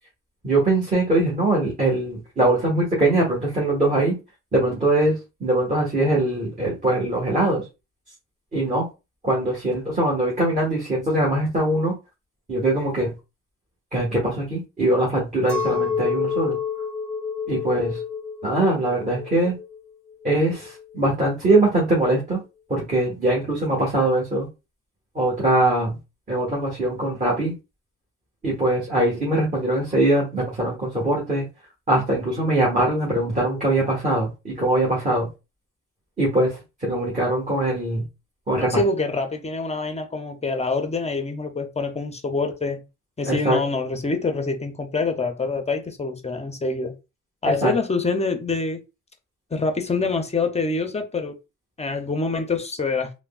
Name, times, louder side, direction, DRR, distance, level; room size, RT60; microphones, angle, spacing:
voice 1, 0.4-4.1 4.5-7.6 8.5-8.9 9.2-11.9 12.5-13.1 13.9-16.6 17.5-18.0 18.4-19.5 20.2-22.4 22.7-24.5 25.1-26.0 26.3-27.5 28.4-31.4 31.9-35.3 36.2-38.0 38.5-38.7 43.2-43.6 47.6-47.7, right 1 dB, 25° right, 1.3 m, -22 dB
Chink clink, 15.5-20.9, left 6 dB, 5° left, 1.4 m, -29 dB
voice 2, 38.6-42.8 43.2-47.0 47.4-48.8 49.5-51.4 51.8-53.1, left 3 dB, 20° left, 0.5 m, -25 dB
3.3 x 2.1 x 2.3 m
cardioid pair, 90°, 30 cm